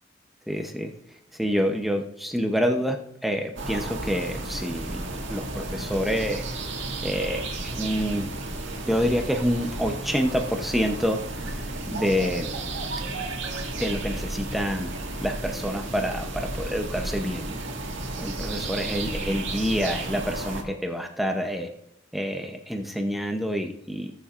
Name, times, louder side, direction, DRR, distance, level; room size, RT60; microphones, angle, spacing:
voice 1, 0.5-0.9 1.3-3.0 3.2-6.4 7.0-8.3 8.9-12.5 13.8-14.9 15.2-17.5 18.2-21.7 22.1-24.1, equal, ahead, 3 dB, 0.7 m, -27 dB
sound 1, 3.6-20.6, right 2 dB, 70° right, 2.0 m, -33 dB
20.5 x 7.2 x 2.5 m, 0.80 s
head